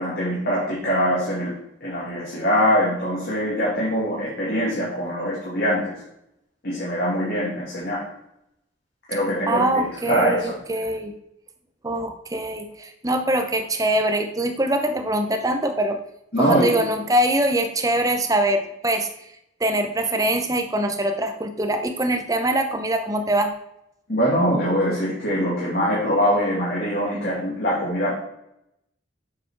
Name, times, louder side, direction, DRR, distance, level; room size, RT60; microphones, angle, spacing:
voice 1, 0.0-1.5 1.8-5.9 6.6-8.0 9.1-10.5 16.3-16.8 24.1-28.2, equal, 50° left, -6 dB, 2.3 m, -23 dB
voice 2, 9.5-11.1 11.8-16.0 16.4-19.1 19.6-23.5, right 1 dB, 15° right, 5 dB, 0.7 m, -23 dB
7.3 x 6.8 x 4.6 m, 0.80 s
head